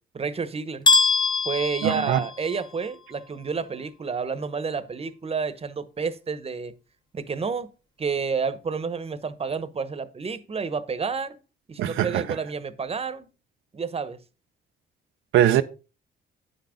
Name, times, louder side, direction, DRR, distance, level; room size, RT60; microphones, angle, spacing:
voice 1, 0.1-0.9 1.4-6.7 7.1-7.7 8.0-11.4 11.7-13.3 13.7-14.2, right 5 dB, 30° right, 1.0 m, -30 dB
sound 1, 0.9-2.8, left 3 dB, 20° left, 1.1 m, -23 dB
voice 2, 1.8-2.2 11.8-12.4 15.3-15.6, right 12 dB, 85° right, 0.6 m, -21 dB
9.6 x 6.1 x 5.1 m
cardioid pair, 90°, 20 cm